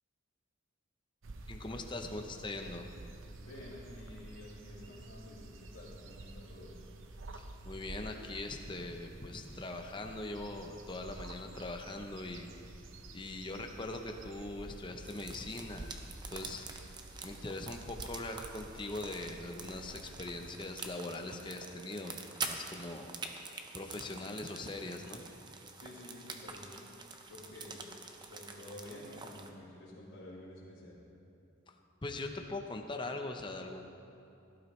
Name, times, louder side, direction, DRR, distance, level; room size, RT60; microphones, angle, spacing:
sound 1, 1.2-20.5, right 2 dB, 70° right, 0.8 m, -50 dB
voice 1, 1.5-2.9 7.3-12.8 13.1-15.9 16.3-16.7 17.2-23.4 23.7-25.2 31.7-31.8 32.0-33.9, left 2 dB, 25° left, 4 dB, 0.7 m, -41 dB
voice 2, 3.4-6.7 25.8-26.8 27.3-27.9 28.3-31.0, left 1 dB, 75° left, -11 dB, 2.3 m, -50 dB
sound 2, 15.0-29.5, right 4 dB, 20° right, 0.6 m, -46 dB
17.0 x 11.5 x 3.2 m, 2.9 s
head